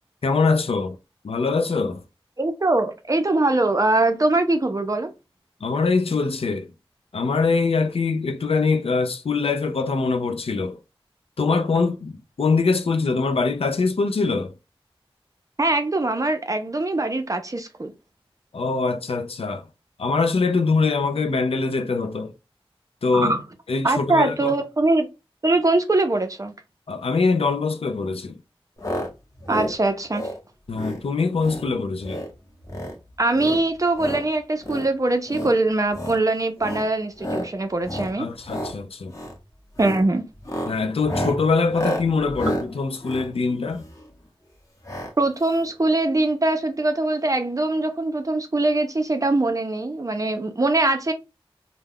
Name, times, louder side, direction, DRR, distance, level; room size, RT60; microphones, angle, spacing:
voice 1, 0.2-1.0 1.2-2.0 5.6-6.7 7.1-10.8 11.4-14.5 18.5-19.6 20.0-22.3 23.0-23.3 23.7-24.6 26.9-28.4 30.7-32.2 38.2-39.1 40.7-43.9, left 4 dB, 85° left, 0.4 m, -23 dB
voice 2, 2.4-5.1 15.6-17.9 23.1-23.4 23.8-25.1 25.4-26.5 29.5-30.3 33.2-38.3 39.8-40.2 45.2-51.1, right 2 dB, 35° right, 0.5 m, -22 dB
sound 1, 28.8-29.1 29.4-29.7 30.1-30.4 30.7-31.0 31.4-31.7 32.0-32.3 32.6-33.0 33.3-34.2 34.6-34.9 35.3-35.5 35.9-36.2 36.6-36.9 37.2-37.5 37.8-38.1 38.4-38.7 39.1-39.4 39.7-40.0 40.4-44.1 44.8-45.1 45.4-45.5 45.7-45.8, equal, 35° left, 0.8 m, -30 dB
2.3 x 2.1 x 3.4 m
wide cardioid pair, 55°, 10 cm